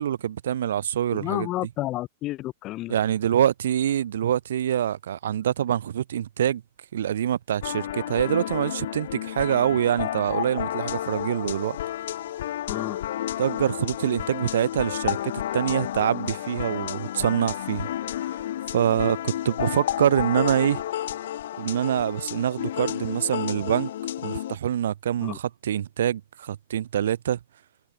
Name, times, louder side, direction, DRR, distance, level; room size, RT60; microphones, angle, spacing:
voice 1, 0.0-1.5 2.9-6.6 6.9-11.8 13.4-17.9 18.7-20.8 21.6-23.9 24.2-27.4, right 10 dB, 90° right, 0.8 m, -25 dB
voice 2, 1.1-2.9 12.7-13.0 25.2-25.4, left 16 dB, 25° left, 0.4 m, -31 dB
sound 1, 7.6-24.6, left 12 dB, 60° left, 1.2 m, -31 dB
supercardioid pair, 180°, 0 cm